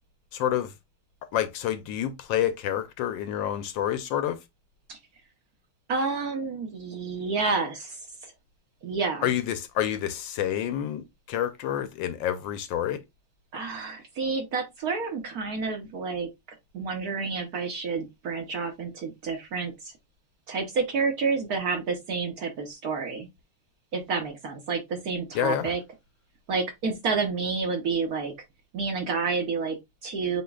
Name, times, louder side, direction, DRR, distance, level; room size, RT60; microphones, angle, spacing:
voice 1, 0.3-0.7 1.3-4.4 9.2-13.0 25.3-25.7, left 11 dB, 75° left, 1.2 m, -28 dB
voice 2, 5.9-8.3 8.8-9.3 13.5-16.3 16.7-19.9 20.5-23.3 23.9-25.8 26.5-28.3 28.7-30.4, right 4 dB, 60° right, 1.1 m, -29 dB
7.9 x 2.8 x 2.3 m
omnidirectional pair, 2.2 m